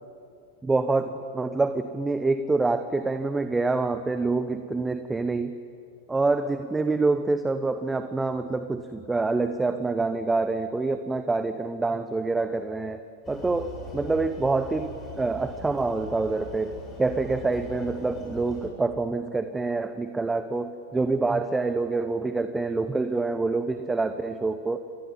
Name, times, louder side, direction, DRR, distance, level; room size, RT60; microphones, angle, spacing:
voice 1, 0.6-5.5 6.1-13.0 13.3-24.8, right 3 dB, 10° right, 10 dB, 1.1 m, -26 dB
sound 1, 13.2-18.7, left 2 dB, 20° left, 7.4 m, -41 dB
28.0 x 20.5 x 9.1 m, 2.4 s
figure-of-eight pair, 90°, 0 cm